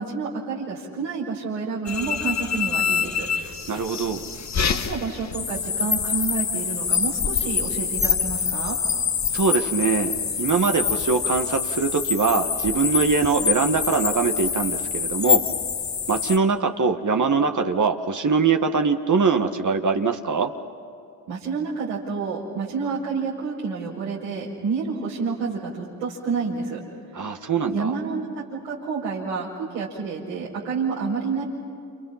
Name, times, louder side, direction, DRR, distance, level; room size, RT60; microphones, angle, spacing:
voice 1, 0.0-3.3 4.7-8.8 21.3-26.8 27.7-31.4, right 5 dB, 85° right, -8 dB, 5.3 m, -29 dB
sound 1, 1.9-16.4, left 7 dB, 35° left, 1.5 m, -25 dB
voice 2, 3.7-4.3 9.3-15.4 16.1-20.5 27.1-27.9, right 5 dB, 35° right, 5 dB, 1.8 m, -22 dB
29.0 x 29.0 x 5.9 m, 2.5 s
hypercardioid pair, 60°, 49 cm